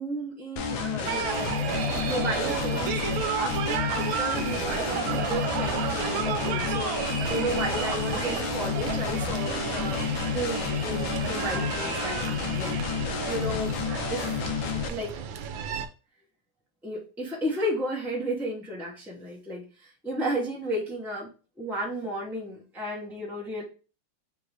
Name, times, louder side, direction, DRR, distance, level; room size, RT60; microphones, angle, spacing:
voice 1, 0.0-1.6 2.0-12.7 13.3-13.7 14.1-14.4 14.9-15.1 15.4-15.5 16.8-21.3 21.6-23.6, right 1 dB, ahead, -5 dB, 0.5 m, -33 dB
sound 1, 0.6-14.9, left 6 dB, 85° left, 1.4 m, -30 dB
sound 2, 1.1-15.9, right 8 dB, 85° right, 1.4 m, -32 dB
3.8 x 2.6 x 4.6 m, 0.34 s
omnidirectional pair, 2.1 m